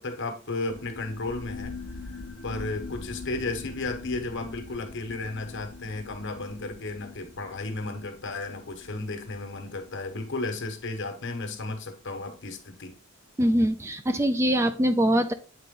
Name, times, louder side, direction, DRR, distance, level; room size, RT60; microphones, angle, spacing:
voice 1, 0.0-1.7 2.4-12.9, left 2 dB, 60° left, 5 dB, 1.3 m, -34 dB
sound 1, 0.7-11.8, left 3 dB, 85° left, 1.2 m, -43 dB
voice 2, 13.4-15.3, equal, 15° right, 9 dB, 0.3 m, -23 dB
8.3 x 3.9 x 3.7 m, 0.36 s
head